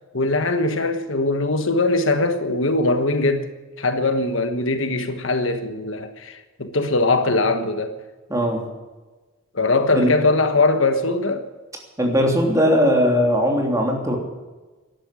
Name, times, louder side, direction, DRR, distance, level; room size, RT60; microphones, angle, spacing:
voice 1, 0.1-3.5 3.8-7.9 9.5-11.5, left 2 dB, 65° left, 1.4 m, -21 dB
voice 2, 8.3-8.7 9.9-10.1 12.0-14.2, equal, 15° right, 3.0 m, -19 dB
13.5 x 11.5 x 8.4 m
head